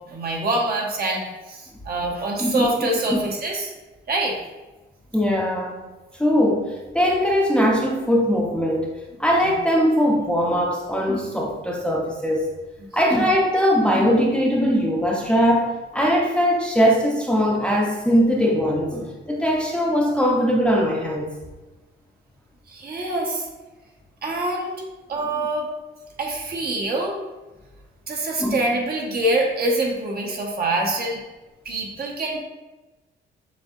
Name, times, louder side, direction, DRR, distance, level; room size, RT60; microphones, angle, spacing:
voice 1, 0.1-3.7 4.1-4.4 9.4-9.5 12.8-13.2 22.7-23.5 24.2-24.8 25.1-25.7 26.2-27.2 28.1-31.2 31.6-32.4, right 2 dB, 50° right, -1 dB, 1.1 m, -25 dB
voice 2, 2.4-3.2 5.1-5.8 6.2-12.6 12.9-21.3 28.4-28.6, equal, 5° left, -2 dB, 0.6 m, -21 dB
6.8 x 2.7 x 2.5 m, 1.1 s
cardioid pair, 90°, 20 cm